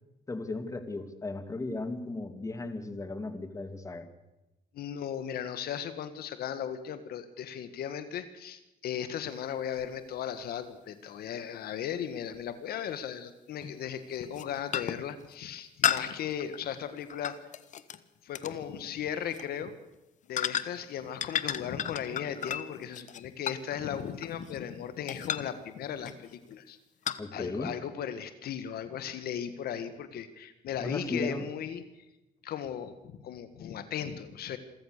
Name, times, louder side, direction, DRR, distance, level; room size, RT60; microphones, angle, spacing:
voice 1, 0.3-4.1 27.2-27.7 30.8-31.4, left 2 dB, 20° left, 9 dB, 2.5 m, -36 dB
voice 2, 4.7-17.3 18.2-19.7 20.3-26.8 27.3-31.8 32.4-34.6, left 9 dB, 65° left, 11 dB, 1.7 m, -37 dB
sound 1, 9.8-9.9 12.3-12.4 13.6-13.8 14.2-14.4 14.7-15.1 15.8-18.0 18.4-18.6 19.2-19.5 20.4-20.9 21.2-24.7 25.1-25.6 26.1-26.4 27.1-27.2, left 9 dB, 45° left, 1.2 m, -33 dB
27.5 x 14.5 x 6.7 m, 0.98 s
cardioid pair, 110°, 17 cm